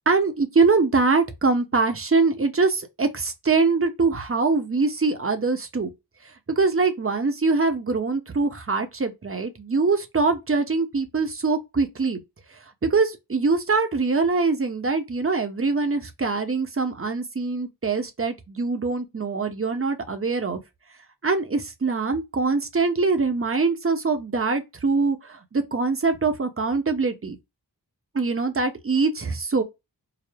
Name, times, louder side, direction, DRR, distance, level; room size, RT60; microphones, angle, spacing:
voice 1, 0.1-5.9 6.6-12.2 12.8-20.6 21.2-27.4 28.1-29.6, right 4 dB, 30° right, 0.8 m, -23 dB
4.8 x 2.0 x 3.4 m
wide cardioid pair, 75°, 42 cm